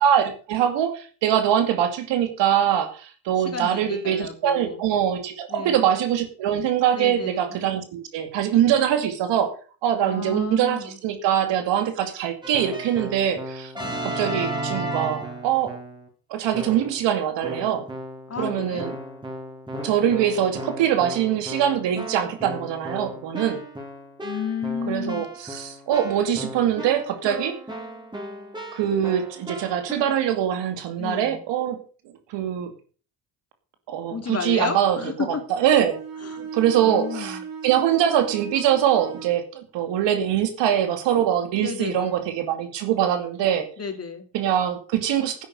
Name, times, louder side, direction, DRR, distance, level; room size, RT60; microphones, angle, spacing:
voice 1, 0.0-9.5 9.8-13.7 14.0-15.8 16.3-17.9 18.4-18.9 19.8-23.6 24.9-27.6 28.7-31.8 32.3-32.7 33.9-35.0 35.5-36.0 36.4-43.7 44.3-45.4, right 10 dB, 85° right, 7 dB, 2.5 m, -23 dB
voice 2, 3.4-4.8 5.5-5.9 6.9-7.6 10.0-11.0 13.8-14.0 18.3-18.9 24.2-25.3 31.0-31.4 34.1-35.5 36.2-36.4 36.8-37.4 41.6-42.2 43.8-44.3, left 5 dB, 35° left, 6 dB, 3.0 m, -32 dB
Keyboard (musical), 12.4-16.1 16.5-17.0 17.4-29.9, right 1 dB, 10° right, 4.3 m, -35 dB
Bowed string instrument, 35.6-39.4, right 6 dB, 55° right, 3.9 m, -37 dB
11.0 x 9.2 x 6.6 m, 0.39 s
cardioid pair, 100°, 42 cm